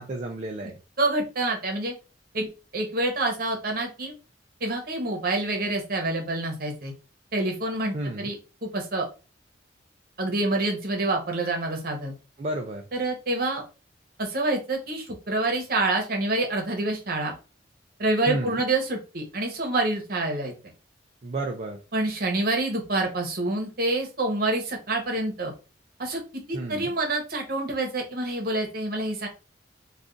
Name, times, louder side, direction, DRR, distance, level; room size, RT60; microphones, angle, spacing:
voice 1, 0.0-0.8 7.9-8.3 12.4-12.8 18.3-18.6 21.2-21.8 26.5-26.9, right 1 dB, 35° right, 2 dB, 0.4 m, -32 dB
voice 2, 1.0-1.9 2.3-2.5 2.7-4.1 4.6-6.9 7.3-9.1 10.2-12.1 12.9-13.6 14.2-17.4 18.0-20.5 21.9-25.5 26.0-26.2 26.5-29.3, right 2 dB, 55° right, 2 dB, 0.9 m, -27 dB
2.4 x 2.4 x 3.7 m, 0.32 s
head